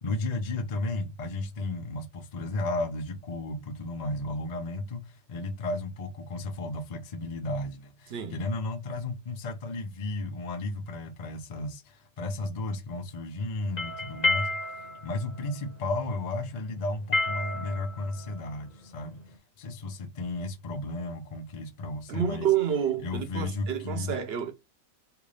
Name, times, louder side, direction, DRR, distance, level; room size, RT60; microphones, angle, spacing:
voice 1, 0.0-14.6 15.0-19.2 19.6-22.5 23.0-24.1, left 2 dB, 75° left, 0.3 m, -34 dB
sound 1, 13.6-19.3, left 2 dB, 35° left, 0.7 m, -31 dB
voice 2, 22.1-24.5, right 9 dB, 55° right, 0.7 m, -28 dB
3.5 x 2.5 x 3.2 m
omnidirectional pair, 1.8 m